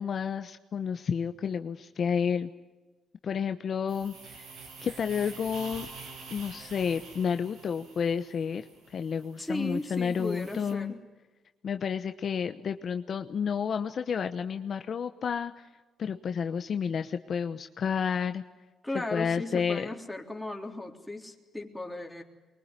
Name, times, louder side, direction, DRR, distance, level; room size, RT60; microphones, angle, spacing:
voice 1, 0.0-2.5 3.2-4.5 4.8-5.9 6.3-10.9 11.6-15.7 16.0-18.4 19.1-19.9, left 7 dB, 55° left, 8 dB, 1.0 m, -31 dB
sound 1, 3.9-10.7, right 4 dB, 85° right, 6.6 m, -47 dB
voice 2, 9.4-11.0 18.8-22.2, left 2 dB, 5° left, 2 dB, 3.6 m, -36 dB
24.0 x 22.5 x 9.8 m, 1.2 s
cardioid pair, 90°, 0 cm